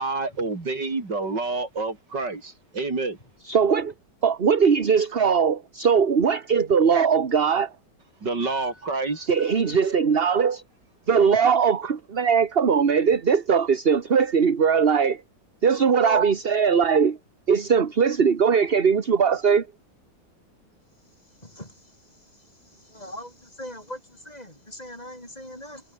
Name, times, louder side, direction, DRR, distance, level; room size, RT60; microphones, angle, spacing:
voice 1, 0.0-3.2 8.2-9.3, right 3 dB, 60° right, 4.7 m, -28 dB
voice 2, 3.4-3.9 4.2-7.7 9.3-10.6 11.1-15.2 15.6-17.2 17.5-19.7, right 6 dB, 35° right, 1.3 m, -20 dB
voice 3, 21.4-21.7 22.9-25.8, left 1 dB, 20° left, 6.9 m, -38 dB
omnidirectional pair, 2.1 m